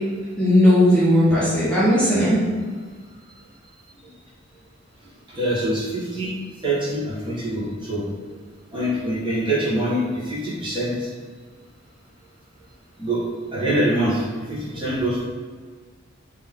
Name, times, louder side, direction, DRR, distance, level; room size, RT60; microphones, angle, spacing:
voice 1, 0.4-2.4, left 1 dB, 5° left, -11 dB, 1.0 m, -17 dB
voice 2, 5.3-6.4 6.6-8.0 8.7-10.9 13.0-13.2 13.5-14.2 14.5-15.2, right 1 dB, 25° right, -8 dB, 1.4 m, -24 dB
4.2 x 3.1 x 3.7 m, 1.5 s
head